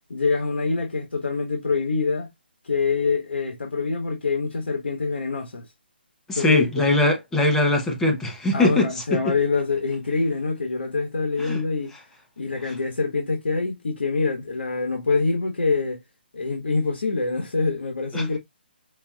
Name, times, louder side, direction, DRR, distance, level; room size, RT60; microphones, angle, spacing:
voice 1, 0.1-2.3 2.6-5.6 6.3-6.7 8.5-11.9 12.4-16.0 16.3-18.4, left 4 dB, 85° left, 1.3 m, -25 dB
voice 2, 6.3-9.2 11.4-11.6 12.7-12.8 18.1-18.3, left 2 dB, 5° left, 0.8 m, -21 dB
5.7 x 2.6 x 2.3 m
hypercardioid pair, 160°, 6 cm